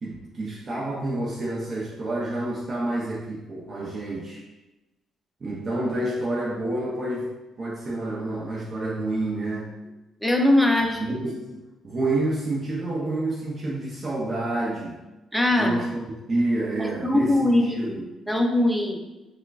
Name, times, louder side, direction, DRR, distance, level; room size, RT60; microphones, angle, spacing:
voice 1, 0.0-4.5 5.4-7.3 7.6-9.7 11.0-15.0 15.6-18.0, right 2 dB, 40° right, -4 dB, 0.5 m, -28 dB
voice 2, 10.2-11.0 15.3-15.8 16.8-17.9 18.3-19.0, left 1 dB, ahead, 2 dB, 0.6 m, -21 dB
4.4 x 2.2 x 2.3 m, 1.1 s
supercardioid pair, 75°, 0 cm